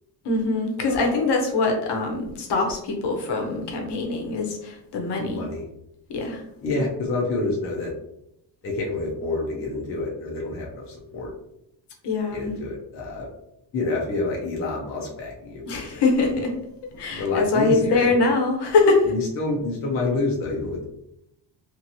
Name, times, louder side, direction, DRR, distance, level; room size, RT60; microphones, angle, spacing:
voice 1, 0.2-5.4 6.1-6.4 12.0-12.5 15.7-16.6 16.9-19.1, left 3 dB, 60° left, 1 dB, 0.8 m, -23 dB
voice 2, 5.3-5.7 6.6-7.9 8.6-11.3 12.3-13.3 13.7-16.3 17.1-18.1 19.0-20.9, left 2 dB, 30° left, -2 dB, 0.5 m, -28 dB
2.8 x 2.6 x 2.7 m, 0.79 s
cardioid pair, 160°, 46 cm